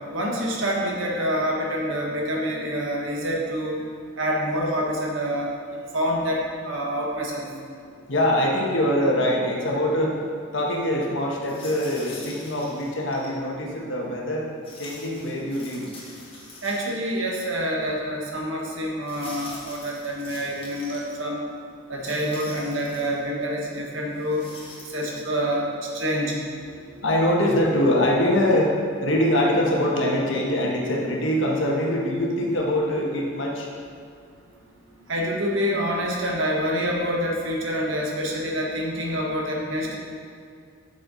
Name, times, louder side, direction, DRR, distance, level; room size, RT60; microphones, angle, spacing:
voice 1, 0.1-3.8 4.2-5.5 5.9-7.4 16.6-21.4 21.9-24.5 24.9-26.4 35.1-40.0, equal, 70° right, -1 dB, 1.5 m, -27 dB
voice 2, 8.1-10.1 10.5-14.5 14.8-15.9 26.8-33.7, left 1 dB, 65° left, -2 dB, 1.4 m, -23 dB
sound 1, 11.4-13.4 14.6-17.2 17.5-17.6 19.0-21.1 22.0-23.2 24.1-25.2, left 2 dB, 30° left, 1.6 m, -44 dB
8.7 x 6.8 x 4.1 m, 2.2 s
head